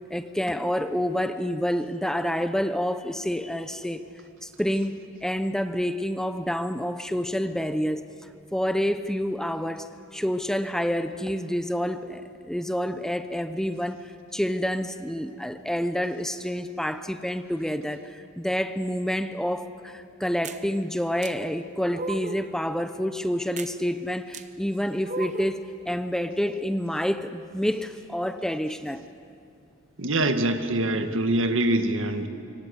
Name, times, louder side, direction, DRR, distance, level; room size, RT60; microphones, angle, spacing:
voice 1, 0.1-4.0 4.4-8.0 8.5-9.9 10.1-29.0, equal, 5° left, 10 dB, 0.7 m, -28 dB
sound 1, 20.4-20.6 21.2-21.3 21.9-22.5 23.6-23.7 24.3-24.5 25.0-25.6, right 3 dB, 35° right, 0.9 m, -35 dB
voice 2, 30.0-32.3, right 1 dB, 75° right, 7 dB, 1.7 m, -24 dB
25.5 x 25.0 x 8.3 m, 2.5 s
head